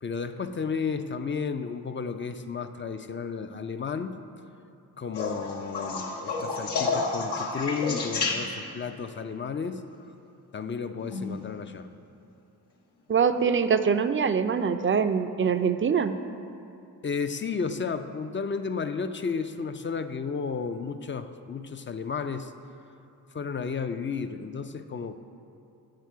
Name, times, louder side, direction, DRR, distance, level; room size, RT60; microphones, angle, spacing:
voice 1, 0.0-4.2 5.0-9.8 10.5-11.9 17.0-22.5 23.3-25.2, left 5 dB, 30° left, 9 dB, 0.4 m, -33 dB
sound 1, 5.1-8.8 11.0-11.5 13.1-13.2, left 3 dB, 80° left, 1.0 m, -30 dB
voice 2, 13.1-16.1, right 6 dB, 30° right, 10 dB, 0.4 m, -24 dB
7.6 x 6.5 x 4.6 m, 2.7 s
cardioid pair, 55°, 40 cm